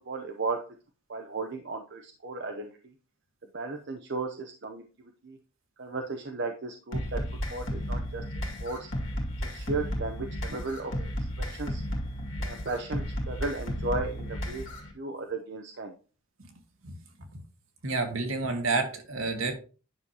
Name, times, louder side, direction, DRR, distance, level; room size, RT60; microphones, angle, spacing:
voice 1, 0.1-0.6 1.1-2.7 3.5-4.8 5.2-5.4 5.8-7.2 7.5-8.2 8.6-8.9 9.5-11.1 11.4-11.8 12.4-14.7 15.0-15.9, right 3 dB, 50° right, 4 dB, 0.7 m, -35 dB
sound 1, 6.9-14.9, equal, 55° left, 2.0 m, -33 dB
voice 2, 17.8-19.6, right 3 dB, 70° right, 4 dB, 1.7 m, -29 dB
9.5 x 6.4 x 2.8 m, 0.35 s
head